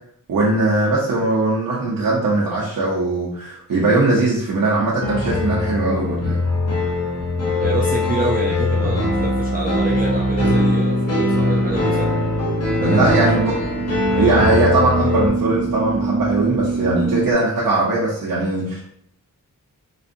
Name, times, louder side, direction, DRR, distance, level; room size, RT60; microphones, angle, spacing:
voice 1, 0.3-6.4 12.8-13.5 14.1-18.8, right 2 dB, 75° right, -5 dB, 0.9 m, -20 dB
sound 1, 5.0-15.3, left 1 dB, 45° left, 0.8 m, -21 dB
voice 2, 7.6-12.1 12.8-13.5, right 2 dB, 25° right, -3 dB, 0.4 m, -26 dB
sound 2, 11.5-17.3, right 3 dB, 45° right, 1.4 m, -26 dB
4.1 x 2.5 x 2.6 m, 0.67 s
wide cardioid pair, 165°, 34 cm